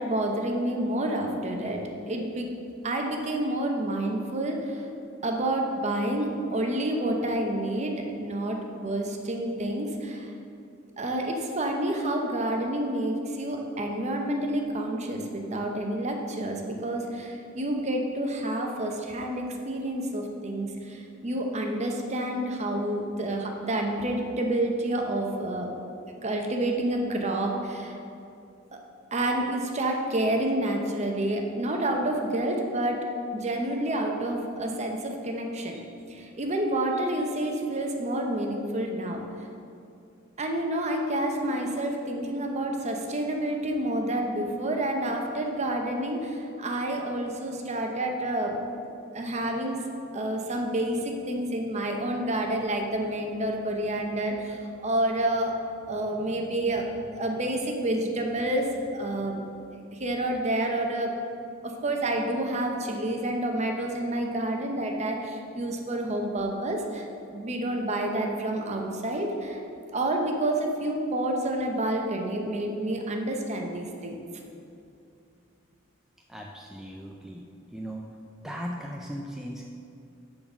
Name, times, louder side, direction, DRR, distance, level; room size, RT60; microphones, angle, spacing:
voice 1, 0.0-1.8 2.1-2.5 2.8-4.9 5.2-10.3 11.0-25.7 26.2-28.0 28.7-28.8 29.1-35.8 36.1-39.2 40.4-48.6 49.1-49.8 50.1-55.5 55.9-59.4 59.9-61.2 61.6-69.6 69.9-74.2, right 1 dB, 35° right, 2 dB, 0.7 m, -29 dB
voice 2, 76.3-77.4 77.7-78.0 78.4-79.7, equal, ahead, -1 dB, 0.3 m, -37 dB
7.0 x 4.0 x 6.0 m, 2.6 s
head